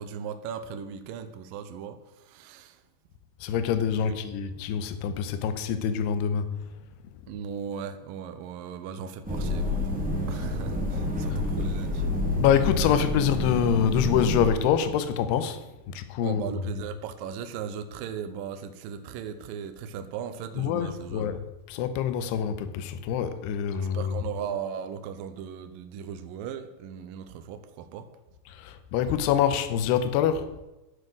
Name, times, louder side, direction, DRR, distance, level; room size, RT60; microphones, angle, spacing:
voice 1, 0.0-2.0 2.3-2.8 4.0-4.2 7.3-9.8 10.3-12.0 16.2-21.3 23.7-28.1, right 7 dB, 85° right, 8 dB, 2.0 m, -37 dB
voice 2, 3.4-6.5 11.3-11.4 12.4-16.6 20.5-24.2 28.5-30.5, left 8 dB, 80° left, 11 dB, 2.7 m, -26 dB
sound 1, 9.2-14.5, left 1 dB, 10° right, 0.5 m, -28 dB
11.0 x 7.6 x 6.2 m, 1.0 s
omnidirectional pair, 5.0 m